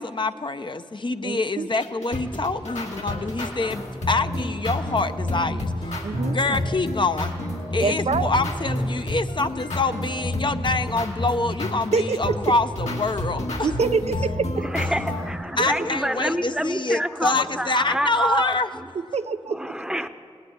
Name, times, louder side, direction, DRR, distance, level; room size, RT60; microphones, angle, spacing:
voice 1, 0.0-5.7 6.3-7.3 7.7-13.7 15.6-18.7, left 3 dB, 45° left, 9 dB, 0.7 m, -26 dB
voice 2, 1.2-1.7 6.0-6.6 7.8-8.3 11.9-12.4 13.6-14.6 15.6-15.9 18.9-19.6, right 4 dB, 70° right, 10 dB, 0.5 m, -26 dB
sound 1, 1.8-15.3, left 1 dB, 75° left, 2.1 m, -29 dB
voice 3, 14.6-18.9 19.5-20.1, right 1 dB, 5° right, 10 dB, 0.8 m, -27 dB
18.0 x 8.2 x 9.9 m, 2.5 s
cardioid pair, 40°, 11 cm